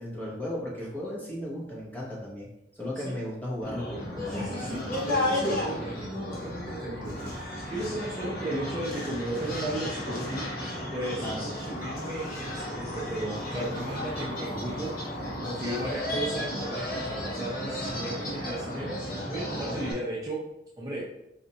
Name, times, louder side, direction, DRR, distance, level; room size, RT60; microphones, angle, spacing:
voice 1, 0.0-2.5 2.8-4.8 11.2-11.4, left 1 dB, 10° left, -5 dB, 0.8 m, -35 dB
sound 1, 3.6-19.9, left 1 dB, 50° left, 0.8 m, -33 dB
voice 2, 4.3-10.4 10.9-14.9 15.4-20.4 20.8-21.1, right 1 dB, 20° right, -6 dB, 0.5 m, -35 dB
4.1 x 2.4 x 2.8 m, 0.83 s
head